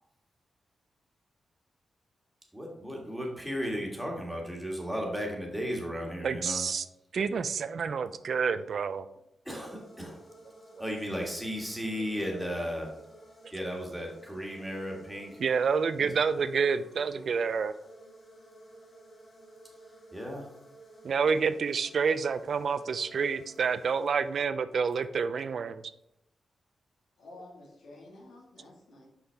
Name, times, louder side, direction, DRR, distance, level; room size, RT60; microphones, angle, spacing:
voice 1, 2.5-6.6 9.5-10.2 10.8-12.9 13.5-15.4 16.0-16.1 20.1-20.5, equal, 5° right, -1 dB, 1.6 m, -35 dB
voice 2, 6.2-6.8 7.1-9.1 15.4-17.7 21.0-25.8, right 5 dB, 65° right, 13 dB, 0.3 m, -28 dB
sound 1, 9.6-24.7, right 1 dB, 50° left, 2.0 m, -53 dB
voice 3, 27.2-29.1, left 2 dB, 90° left, -2 dB, 1.7 m, -50 dB
5.8 x 5.7 x 3.4 m, 0.81 s
cardioid pair, 100°, 0 cm